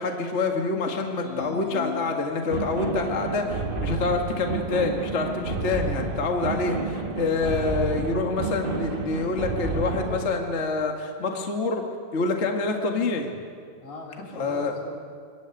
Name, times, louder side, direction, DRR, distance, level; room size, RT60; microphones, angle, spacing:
voice 1, 0.0-11.8 12.1-13.3 14.3-14.7, left 3 dB, 30° left, 2 dB, 1.3 m, -27 dB
sound 1, 1.2-2.8, left 10 dB, 85° left, 2.6 m, -37 dB
sound 2, 2.5-10.3, right 3 dB, 45° right, 0.7 m, -30 dB
voice 2, 3.1-3.4 9.7-10.5 13.8-15.0, left 2 dB, 60° left, 0 dB, 4.1 m, -41 dB
23.5 x 14.0 x 9.1 m, 2.2 s
omnidirectional pair, 3.8 m